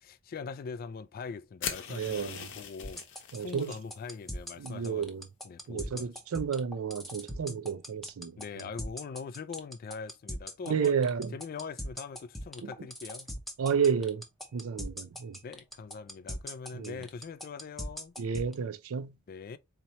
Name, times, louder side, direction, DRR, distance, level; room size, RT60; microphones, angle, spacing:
voice 1, 0.0-5.1 5.4-6.1 8.4-10.9 11.3-13.3 15.4-18.1 19.3-19.6, left 5 dB, 45° left, 0.3 m, -42 dB
sound 1, 1.6-3.8, left 7 dB, 60° left, 0.8 m, -40 dB
voice 2, 1.9-2.5 3.3-3.7 4.6-5.2 5.7-8.4 10.7-11.3 12.6-12.7 13.6-14.2 14.5-15.4 16.7-17.0 18.2-19.2, right 6 dB, 75° right, 0.4 m, -31 dB
sound 2, 2.8-18.5, equal, ahead, 0.6 m, -39 dB
4.1 x 2.9 x 2.9 m
head